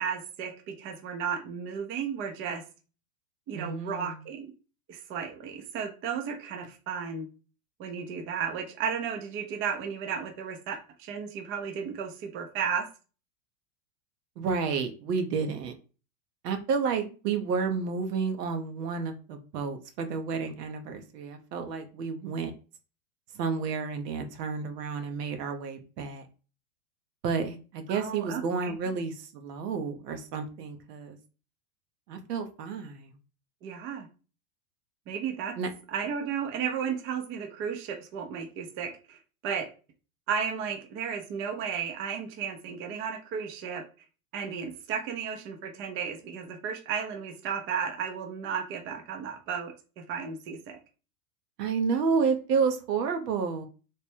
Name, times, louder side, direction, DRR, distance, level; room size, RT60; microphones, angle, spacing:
voice 1, 0.0-2.6 3.5-4.5 4.9-7.3 7.8-12.9 27.9-28.8 33.6-34.1 35.1-35.5 35.9-39.7 40.3-43.8 44.3-50.8, right 7 dB, 30° right, 4 dB, 0.5 m, -34 dB
voice 2, 3.5-4.2 14.4-15.7 16.4-22.5 23.3-26.3 27.2-31.2 32.1-33.1 35.6-35.7 51.6-53.7, right 5 dB, 80° right, 6 dB, 0.9 m, -30 dB
3.3 x 2.2 x 4.3 m, 0.35 s
supercardioid pair, 130°, 47 cm